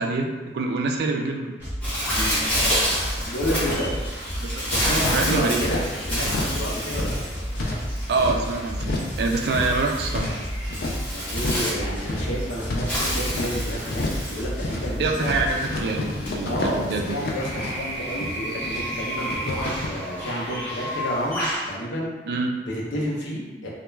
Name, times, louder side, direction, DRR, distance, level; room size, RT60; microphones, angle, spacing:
voice 1, 0.0-1.6 4.4-4.6 5.1-5.6 8.1-10.3 15.0-17.2 22.3-22.6, right 3 dB, 60° right, 2 dB, 0.3 m, -25 dB
sound 1, 1.6-15.6, equal, 10° right, 1.0 m, -32 dB
Bird, 1.8-21.7, equal, 10° left, 0.7 m, -30 dB
voice 2, 3.2-4.0 4.7-7.2 11.1-14.0 14.3-15.4 16.4-22.1 22.7-23.7, equal, 85° left, -4 dB, 0.6 m, -30 dB
sound 2, 5.0-5.9 6.2-6.6 6.9-8.4 8.8-9.2 9.4-11.0 11.3-11.7 12.0-13.5 13.9-14.3 14.5-14.9 15.2-18.8 19.1-19.9, left 2 dB, 55° left, 0.3 m, -31 dB
2.2 x 2.2 x 3.1 m, 1.2 s
head